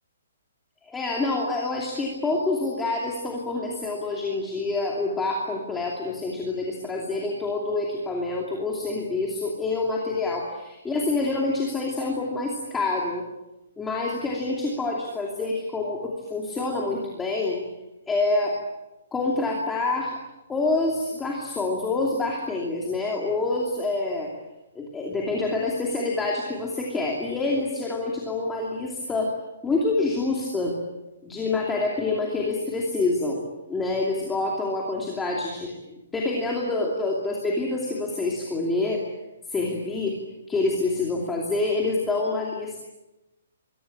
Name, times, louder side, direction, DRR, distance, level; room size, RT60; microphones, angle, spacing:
voice 1, 0.8-13.2 13.8-17.6 18.1-18.6 19.1-20.2 20.5-24.3 24.7-29.3 29.6-30.8 31.2-33.4 33.7-39.0 39.5-40.2 40.5-42.8, left 3 dB, 5° left, -2 dB, 2.7 m, -27 dB
26.5 x 23.0 x 8.7 m, 0.98 s
hypercardioid pair, 180°, 0 cm